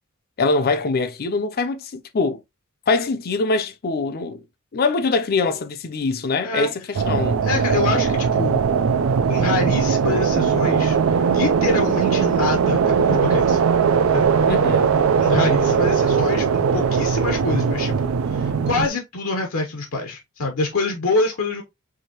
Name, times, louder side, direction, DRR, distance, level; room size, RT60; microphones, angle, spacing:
voice 1, 0.4-2.4 2.9-4.4 4.7-7.4 14.5-14.9, left 3 dB, 45° left, 0.5 m, -23 dB
sound 1, 6.9-18.9, right 6 dB, 70° right, 0.4 m, -19 dB
voice 2, 7.4-8.7 9.3-13.6 14.1-14.3 15.2-21.6, left 3 dB, 75° left, 0.9 m, -26 dB
4.8 x 2.6 x 2.9 m
head